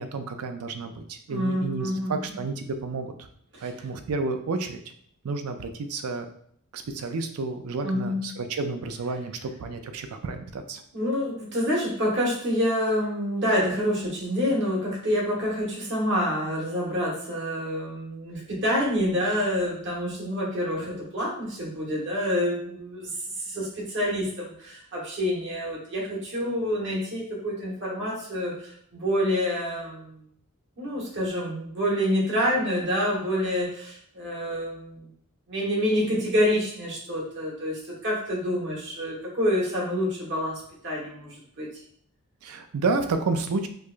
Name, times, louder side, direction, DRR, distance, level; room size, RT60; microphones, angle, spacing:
voice 1, 0.0-3.1 3.6-4.8 5.2-6.3 6.7-10.8 42.4-43.7, right 3 dB, 75° right, 7 dB, 0.4 m, -30 dB
voice 2, 1.3-2.4 3.5-3.7 7.8-8.4 10.9-23.1 23.4-30.2 30.8-35.1 35.5-41.7, equal, 55° right, -4 dB, 1.3 m, -27 dB
4.5 x 2.3 x 2.5 m, 0.66 s
head